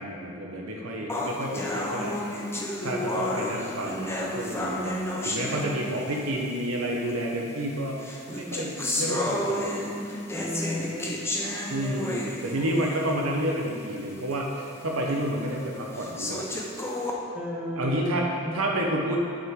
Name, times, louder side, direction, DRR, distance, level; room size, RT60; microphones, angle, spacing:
voice 1, 0.0-8.0 8.3-9.7 11.7-16.5 17.7-19.2, right 1 dB, 85° right, -1 dB, 1.0 m, -30 dB
sound 1, 1.1-6.2 7.1-7.2 8.0-13.3 13.7-13.8 14.3-14.4 15.1-15.2 15.9-17.1, left 1 dB, 10° left, 0.7 m, -31 dB
voice 2, 10.3-11.1 17.3-18.6, left 1 dB, 5° right, -7 dB, 1.7 m, -34 dB
9.0 x 6.4 x 3.7 m, 2.4 s
head